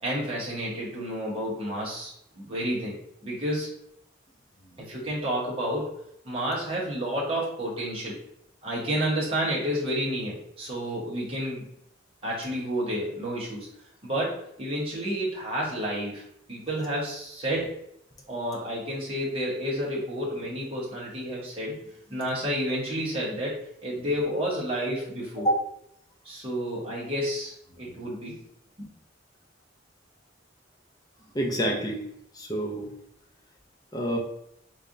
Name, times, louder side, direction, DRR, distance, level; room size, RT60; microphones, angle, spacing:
voice 1, 0.0-2.1 2.4-2.9 3.2-3.7 4.8-6.0 6.2-8.2 8.6-11.7 12.2-13.7 14.0-17.8 18.3-25.5 26.2-28.4 28.8-28.9, equal, 30° right, -5 dB, 1.0 m, -30 dB
voice 2, 31.3-32.1 32.3-32.9 33.9-34.2, right 1 dB, 20° left, 0 dB, 0.7 m, -27 dB
3.6 x 3.3 x 2.6 m, 0.74 s
head